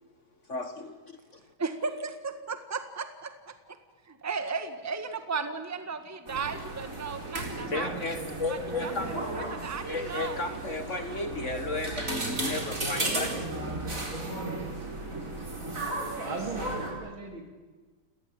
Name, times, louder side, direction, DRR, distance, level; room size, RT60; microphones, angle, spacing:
voice 1, 0.5-1.4 7.7-9.1 9.4-9.5 9.9-13.8, left 3 dB, 35° left, 8 dB, 1.6 m, -34 dB
voice 2, 1.6-3.8 4.1-7.9 8.5-10.4, right 5 dB, 10° right, 8 dB, 1.4 m, -35 dB
sound 1, 6.3-16.9, right 2 dB, 35° right, 4.7 m, -34 dB
voice 3, 16.2-17.5, right 4 dB, 65° right, 3 dB, 4.3 m, -38 dB
29.5 x 18.0 x 8.8 m, 1.4 s
omnidirectional pair, 2.4 m